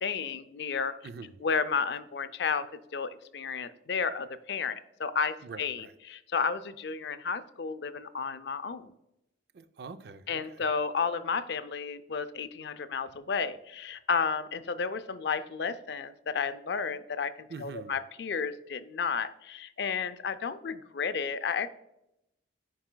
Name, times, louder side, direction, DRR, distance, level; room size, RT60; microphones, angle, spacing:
voice 1, 0.0-0.9 1.4-2.7 2.9-8.9 10.3-17.3 17.6-21.7, left 5 dB, 65° left, 0.4 m, -32 dB
voice 2, 1.0-1.4 5.4-5.9 9.5-10.7 17.5-18.0, right 4 dB, 60° right, 0.4 m, -44 dB
10.0 x 4.8 x 2.2 m
head